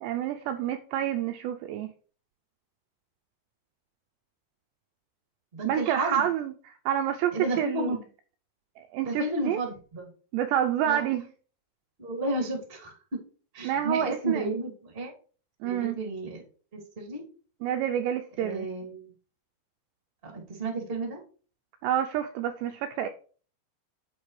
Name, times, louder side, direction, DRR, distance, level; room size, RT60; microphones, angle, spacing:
voice 1, 0.0-1.9 5.7-7.9 8.8-9.6 10.3-11.3 13.6-14.5 15.6-16.0 17.6-18.7 21.8-23.1, right 10 dB, 90° right, 2.4 m, -28 dB
voice 2, 5.5-6.3 7.3-8.1 9.0-10.1 10.8-11.0 12.0-13.2 13.5-15.1 15.6-16.4 16.7-17.2 18.4-19.1 20.2-21.2, right 2 dB, 20° right, 1.6 m, -32 dB
9.6 x 8.7 x 3.2 m
omnidirectional pair, 5.6 m